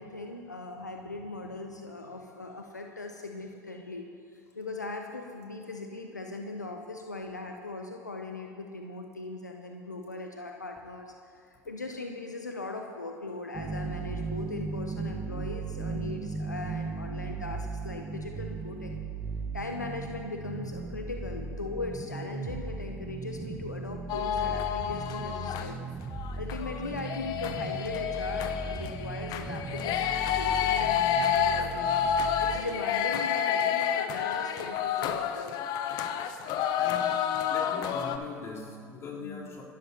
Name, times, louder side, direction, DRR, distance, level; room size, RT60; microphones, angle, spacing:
voice 1, 0.0-19.0 19.5-25.8 26.4-35.6 39.2-39.5, left 3 dB, 90° left, 4 dB, 0.8 m, -39 dB
sound 1, 13.5-32.6, right 3 dB, 20° right, 1.3 m, -37 dB
sound 2, 24.1-25.7 26.1-38.2, left 8 dB, 50° left, 1.0 m, -29 dB
voice 2, 36.7-39.6, left 4 dB, 30° left, -4 dB, 3.7 m, -41 dB
26.5 x 12.5 x 2.9 m, 2.3 s
figure-of-eight pair, 75°, 9 cm